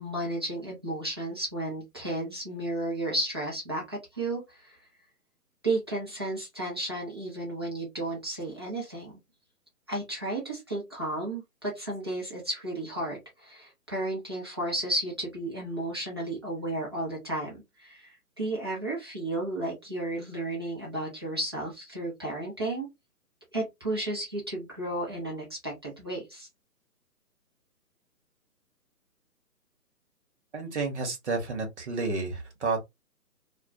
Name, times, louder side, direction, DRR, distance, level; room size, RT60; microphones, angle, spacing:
voice 1, 0.0-4.8 5.6-9.2 9.9-22.9 23.5-26.5, right 1 dB, 15° right, 0.5 m, -33 dB
voice 2, 30.5-32.8, right 3 dB, 45° right, 0.9 m, -31 dB
2.2 x 2.1 x 2.6 m
figure-of-eight pair, 140°, 47 cm